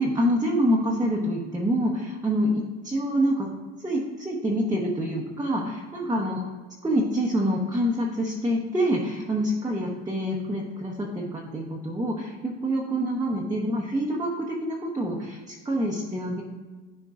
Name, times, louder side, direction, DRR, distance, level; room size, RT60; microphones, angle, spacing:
voice 1, 0.0-3.5 3.8-6.4 6.8-16.4, equal, 10° right, -2 dB, 1.0 m, -26 dB
10.5 x 4.4 x 2.5 m, 1.3 s
hypercardioid pair, 75°, 36 cm